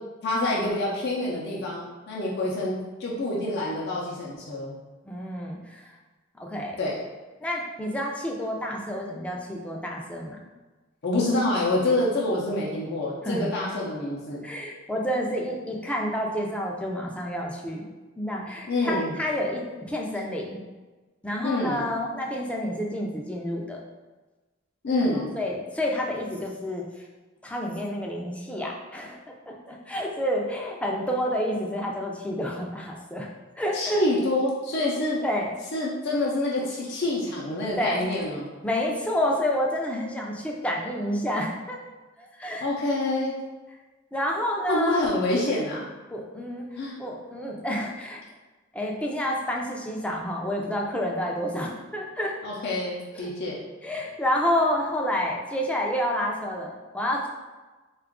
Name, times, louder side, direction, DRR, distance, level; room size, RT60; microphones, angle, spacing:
voice 1, 0.2-4.7 6.8-7.0 11.0-14.4 18.7-19.2 21.4-21.8 24.8-25.3 33.7-35.2 35.7-38.5 42.6-43.3 44.7-45.9 46.8-47.0 52.4-53.6, left 2 dB, 55° left, -5 dB, 0.6 m, -27 dB
voice 2, 5.1-5.9 6.4-6.8 7.4-10.4 13.2-13.5 14.4-17.9 18.2-20.6 21.2-23.8 25.3-26.8 27.4-29.2 29.5-33.3 33.6-34.0 35.2-35.6 37.8-38.1 38.6-41.8 42.2-42.7 44.1-45.1 46.1-48.2 48.7-52.3 53.2-53.3 53.8-57.3, equal, 5° left, -1 dB, 0.4 m, -29 dB
3.8 x 2.4 x 3.5 m, 1.2 s
head